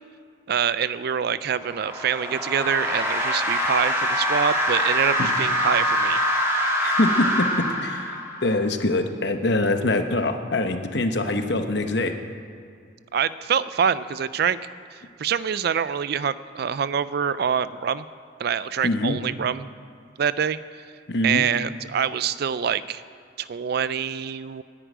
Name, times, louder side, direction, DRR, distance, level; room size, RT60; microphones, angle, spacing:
voice 1, 0.5-6.2 13.1-14.6 14.9-18.1 18.4-19.7 20.2-20.6 21.2-23.0 23.4-24.6, right 7 dB, 55° right, 16 dB, 0.4 m, -25 dB
sound 1, 1.5-8.5, equal, 15° right, 1.7 m, -24 dB
voice 2, 6.8-12.1 18.8-19.2 21.1-21.4, left 2 dB, 60° left, 7 dB, 1.0 m, -24 dB
10.0 x 9.4 x 9.2 m, 2.3 s
head